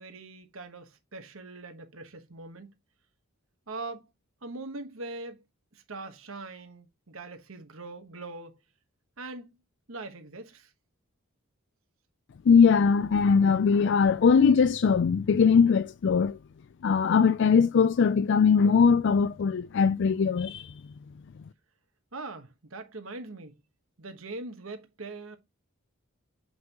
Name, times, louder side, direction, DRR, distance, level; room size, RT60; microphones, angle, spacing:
voice 1, 0.0-2.7 3.7-4.1 4.4-5.4 5.7-8.6 9.2-9.5 9.9-10.7 22.1-23.6 24.0-25.4, right 3 dB, 70° right, 1.2 m, -41 dB
voice 2, 12.5-16.4 16.8-20.7, left 6 dB, 55° left, 0.3 m, -21 dB
7.8 x 5.6 x 2.9 m
head